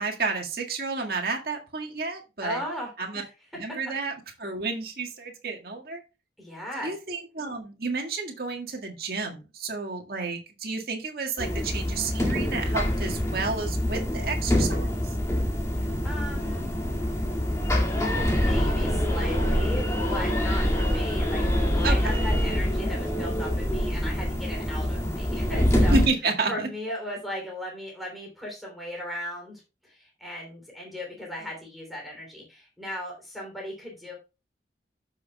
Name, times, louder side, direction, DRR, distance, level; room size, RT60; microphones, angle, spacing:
voice 1, 0.0-2.6 3.0-3.2 3.6-4.1 4.4-6.0 6.8-15.0 21.8-22.3 25.9-26.5, right 4 dB, 55° right, 2 dB, 1.8 m, -31 dB
voice 2, 2.4-3.2 6.4-6.9 15.7-16.7 18.2-21.4 21.7-26.0 26.5-34.1, equal, ahead, -2 dB, 3.2 m, -37 dB
sound 1, 11.4-26.1, equal, 15° left, 2.0 m, -25 dB
14.5 x 5.9 x 2.3 m, 0.29 s
head